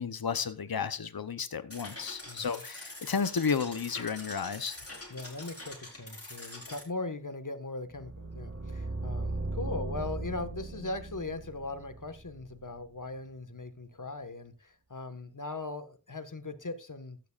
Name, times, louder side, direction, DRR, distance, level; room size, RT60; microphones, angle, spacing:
voice 1, 0.0-4.8, left 6 dB, 70° left, 0.8 m, -32 dB
sound 1, 1.7-6.8, left 1 dB, 40° left, 4.5 m, -45 dB
voice 2, 2.3-2.6 5.1-17.3, left 2 dB, 55° left, 1.5 m, -39 dB
sound 2, 7.9-12.9, right 2 dB, 40° right, 1.8 m, -38 dB
14.5 x 11.5 x 2.4 m
wide cardioid pair, 45°, 37 cm